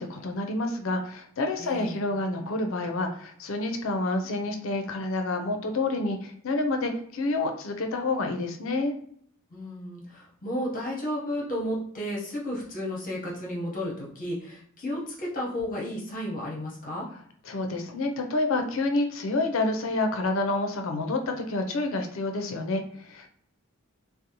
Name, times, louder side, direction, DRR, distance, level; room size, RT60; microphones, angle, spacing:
voice 1, 0.0-8.9 17.5-23.3, left 2 dB, 70° left, 4 dB, 0.5 m, -28 dB
voice 2, 1.6-2.0 9.5-17.1, equal, 40° left, -3 dB, 0.8 m, -33 dB
2.6 x 2.0 x 2.8 m, 0.62 s
head